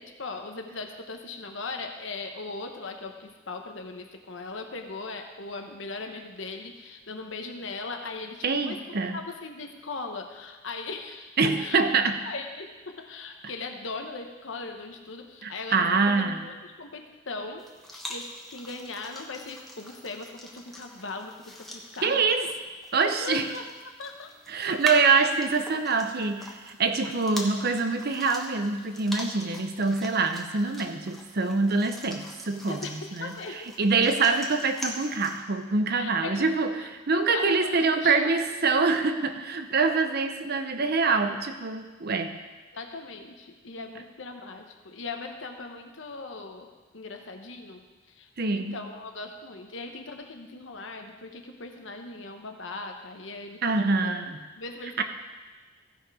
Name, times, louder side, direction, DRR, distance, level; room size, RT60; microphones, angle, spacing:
voice 1, 0.0-8.8 9.1-11.8 12.2-22.5 23.0-24.3 25.2-25.3 32.7-33.7 34.3-34.4 35.9-36.9 37.1-38.3 42.7-54.1 54.6-55.0, left 3 dB, 80° left, 5 dB, 1.1 m, -39 dB
voice 2, 8.4-9.2 11.4-12.2 15.4-16.5 22.0-22.5 22.9-23.5 24.5-33.3 33.8-42.4 48.4-48.8 53.6-54.4 55.0-55.1, right 4 dB, 55° right, 8 dB, 0.8 m, -25 dB
sound 1, 17.6-35.4, left 1 dB, ahead, 1.2 m, -42 dB
15.0 x 5.8 x 4.9 m, 1.3 s
head